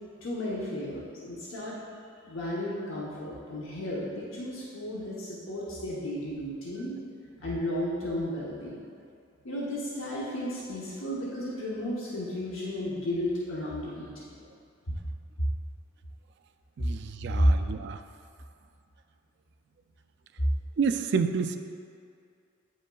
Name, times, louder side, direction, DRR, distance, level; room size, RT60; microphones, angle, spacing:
voice 1, 0.2-1.8 2.2-7.0 7.4-8.8 9.4-14.3 17.4-17.6, equal, 75° left, -6 dB, 0.9 m, -32 dB
voice 2, 16.8-18.0 20.8-21.6, right 5 dB, 55° right, 7 dB, 0.3 m, -29 dB
8.8 x 5.3 x 2.3 m, 2.4 s
head